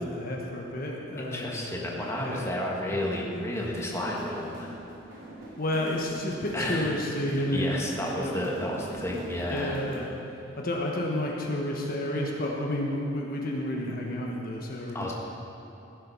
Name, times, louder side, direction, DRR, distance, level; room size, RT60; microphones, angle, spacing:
voice 1, 0.0-1.6 2.2-2.5 5.6-7.7 8.2-8.5 9.5-10.1 10.6-15.1, left 1 dB, 50° left, -1 dB, 1.2 m, -31 dB
voice 2, 1.2-4.7 6.5-6.9 7.5-9.8 14.9-15.1, left 1 dB, 15° left, -3 dB, 1.5 m, -31 dB
sound 1, 1.5-10.2, right 1 dB, 90° right, 3.0 m, -43 dB
15.0 x 7.7 x 5.5 m, 3.0 s
head